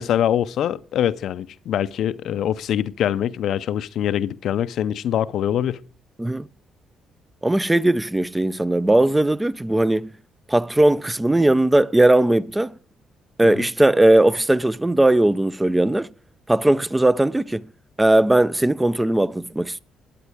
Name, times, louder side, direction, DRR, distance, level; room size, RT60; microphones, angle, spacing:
voice 1, 0.0-5.8 13.6-13.7, left 10 dB, 75° left, 0.5 m, -24 dB
voice 2, 7.4-10.1 10.5-12.7 13.4-16.1 16.5-17.6 18.0-19.8, right 1 dB, 10° right, 0.5 m, -18 dB
12.5 x 9.1 x 4.9 m
cardioid pair, 90°, 0 cm